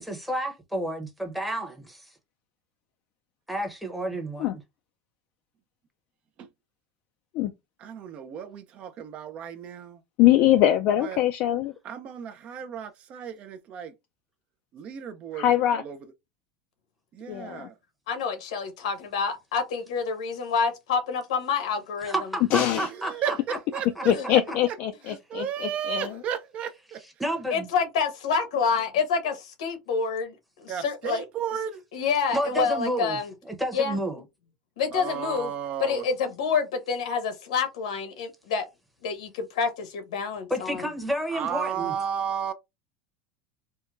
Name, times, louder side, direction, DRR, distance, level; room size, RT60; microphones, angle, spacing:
voice 1, 0.0-2.1 3.5-4.6 22.0-23.3 24.0-24.1 24.5-24.6 27.2-27.7 32.3-33.2 33.5-34.2 40.5-41.9, right 1 dB, ahead, 0.8 m, -30 dB
voice 2, 7.8-10.0 11.0-11.2 11.8-13.9 14.7-16.0 17.1-17.8 22.8-24.4 24.7-24.8 25.1-27.0 30.7-31.8 34.9-36.1 41.3-42.5, right 8 dB, 35° right, 0.5 m, -34 dB
voice 3, 10.2-11.7 15.3-15.8 17.3-17.7 22.5-22.9 24.1-26.1, left 12 dB, 50° left, 0.3 m, -23 dB
voice 4, 18.1-22.1 24.1-24.3 27.5-31.2 31.9-33.3 33.7-34.0 34.8-35.5 35.8-38.6 39.0-40.9, left 5 dB, 90° left, 1.1 m, -28 dB
4.4 x 2.1 x 2.4 m
supercardioid pair, 145°, 3 cm